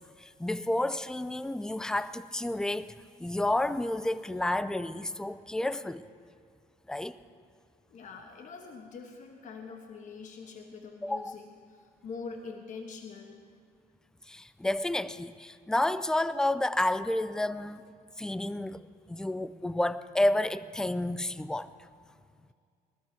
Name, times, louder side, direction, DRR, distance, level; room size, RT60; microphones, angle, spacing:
voice 1, 0.2-2.9 3.2-6.0 6.9-7.2 11.0-11.3 14.3-17.8 18.2-21.7, left 1 dB, 5° left, 0.4 m, -30 dB
voice 2, 7.9-13.4, left 5 dB, 50° left, 1.2 m, -44 dB
20.0 x 12.5 x 4.5 m
cardioid pair, 110°, 17 cm